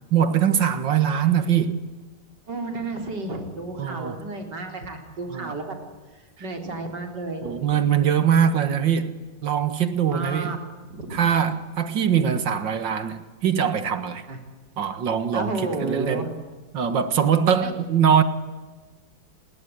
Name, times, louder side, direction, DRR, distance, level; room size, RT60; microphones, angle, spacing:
voice 1, 0.1-1.8 3.8-4.2 5.3-5.5 7.4-9.1 9.4-10.6 11.1-14.2 14.8-16.3 16.7-18.2, right 8 dB, 80° right, 2.4 m, -22 dB
voice 2, 2.5-5.8 6.1-7.7 10.1-10.6 10.8-11.2 14.3-14.4 15.3-16.3 17.6-17.7, right 2 dB, 65° right, 4.5 m, -32 dB
29.5 x 20.5 x 9.4 m
omnidirectional pair, 2.0 m